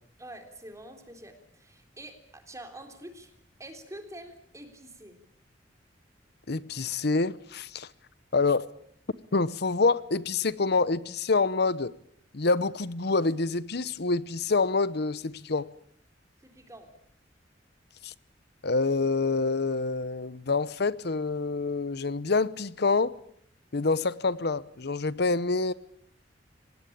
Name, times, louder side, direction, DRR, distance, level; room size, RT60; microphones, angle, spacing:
voice 1, 0.2-3.3 3.6-5.2 16.4-16.9, right 1 dB, 15° right, 3.6 m, -46 dB
voice 2, 6.5-7.9 8.3-8.7 9.3-11.9 12.3-15.7 18.0-18.1 18.6-23.2 23.7-25.7, left 3 dB, 60° left, 0.9 m, -27 dB
25.5 x 19.5 x 8.7 m
head